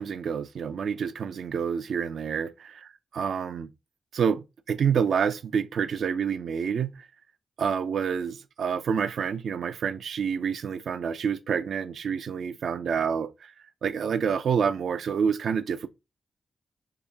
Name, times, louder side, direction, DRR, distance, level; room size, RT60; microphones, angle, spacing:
voice 1, 0.0-2.7 3.1-3.7 4.1-7.1 7.6-13.5 13.8-15.9, right 7 dB, 80° right, 0.4 m, -28 dB
3.6 x 2.7 x 2.7 m
cardioid pair, 55°, 0 cm